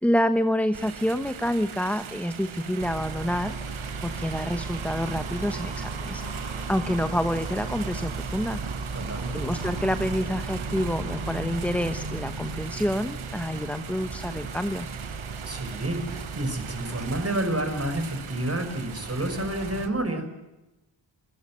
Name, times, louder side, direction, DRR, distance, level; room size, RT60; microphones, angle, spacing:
voice 1, 0.0-6.4 6.7-8.6 9.3-14.9, equal, 5° left, 10 dB, 1.1 m, -28 dB
sound 1, 0.7-19.9, right 8 dB, 85° right, 1.4 m, -40 dB
sound 2, 2.8-19.9, right 3 dB, 65° right, 4.7 m, -36 dB
voice 2, 8.9-9.5 15.5-20.3, right 1 dB, 30° right, 8 dB, 5.5 m, -29 dB
26.0 x 17.5 x 7.5 m, 1.0 s
wide cardioid pair, 75°, 47 cm